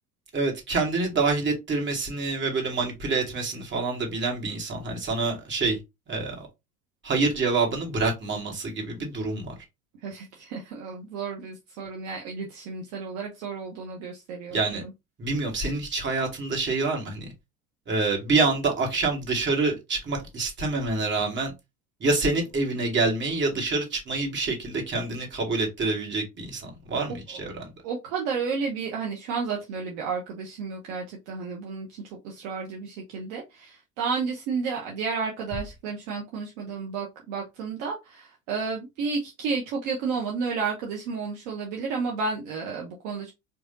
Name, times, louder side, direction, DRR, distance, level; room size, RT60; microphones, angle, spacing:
voice 1, 0.3-5.8 6.1-6.5 7.0-9.5 14.5-14.8 15.2-17.3 17.9-21.5 22.0-27.7, right 3 dB, 25° right, 1.8 m, -27 dB
voice 2, 10.0-14.9 27.1-27.4 27.8-43.3, right 5 dB, 50° right, 1.0 m, -32 dB
4.8 x 2.6 x 2.6 m
figure-of-eight pair, 70°, 43 cm